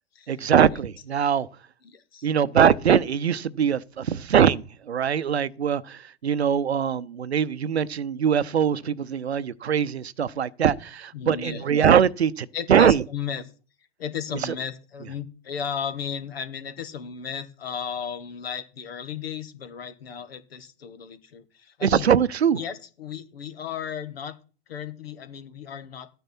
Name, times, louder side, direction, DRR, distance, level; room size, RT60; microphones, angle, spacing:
voice 1, 0.3-1.5 2.2-13.0 21.8-22.6, right 8 dB, 80° right, 0.7 m, -22 dB
voice 2, 1.8-2.3 11.1-11.7 12.5-13.5 14.0-22.1 22.5-24.3 24.7-26.1, left 7 dB, 65° left, 1.5 m, -35 dB
13.0 x 9.2 x 4.3 m
figure-of-eight pair, 105°, 32 cm